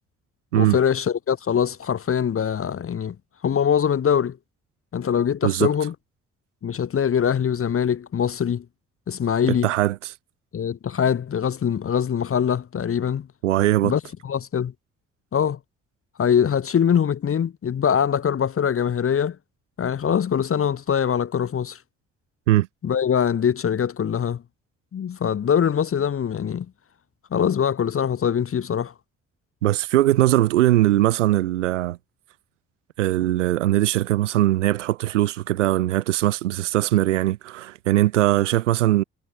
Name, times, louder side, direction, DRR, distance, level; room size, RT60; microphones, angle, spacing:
voice 1, 0.5-3.2 3.4-4.4 4.9-5.9 6.6-8.6 9.1-9.7 10.5-13.3 13.8-14.7 15.3-15.6 16.2-19.4 19.8-21.8 22.8-24.4 24.9-26.7 27.3-28.9, left 8 dB, 40° left, 0.9 m, -23 dB
voice 2, 9.5-10.1 13.4-13.9 22.5-22.7 29.6-32.0 33.0-39.0, right 15 dB, 85° right, 1.1 m, -20 dB
hypercardioid pair, 40°, 35 cm